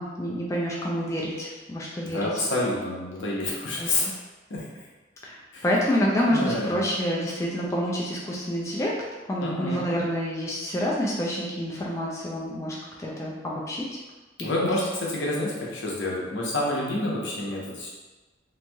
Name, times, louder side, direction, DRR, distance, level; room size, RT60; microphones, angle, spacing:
voice 1, 0.0-2.3 3.8-3.9 5.2-9.0 9.3-13.9 14.4-14.6, equal, 15° left, -4 dB, 0.3 m, -28 dB
voice 2, 2.0-4.1 4.5-4.6 5.5-5.6 6.3-6.8 9.4-9.9 14.4-17.9, left 1 dB, 70° left, -4 dB, 0.7 m, -28 dB
3.0 x 2.6 x 2.2 m, 1.2 s
head